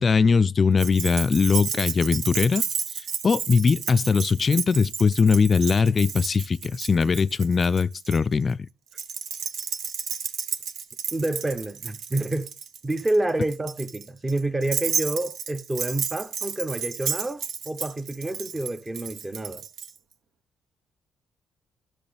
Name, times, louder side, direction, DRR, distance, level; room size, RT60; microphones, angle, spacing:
voice 1, 0.0-2.6 3.2-8.7, left 5 dB, 40° left, 0.4 m, -21 dB
Keys jangling, 0.8-8.2 8.9-19.9, right 7 dB, 75° right, 0.9 m, -32 dB
voice 2, 11.1-12.5 12.8-19.7, right 2 dB, 20° right, 0.9 m, -28 dB
12.5 x 6.2 x 3.4 m
cardioid pair, 90°, 0 cm